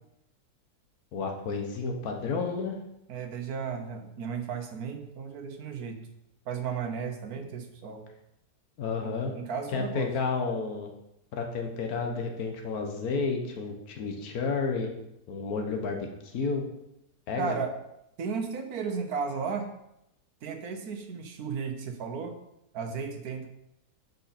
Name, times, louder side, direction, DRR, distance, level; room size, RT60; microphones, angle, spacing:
voice 1, 1.1-2.8 7.4-7.5 8.8-9.3 9.7-10.9 11.3-14.9 15.3-16.7 17.3-17.5, left 4 dB, 85° left, 3 dB, 1.5 m, -31 dB
voice 2, 3.1-6.0 6.5-8.1 9.0-10.1 17.4-17.7 18.2-19.7 20.4-22.3 22.7-23.5, right 6 dB, 80° right, 6 dB, 1.4 m, -34 dB
9.0 x 5.4 x 4.3 m, 0.84 s
omnidirectional pair, 1.6 m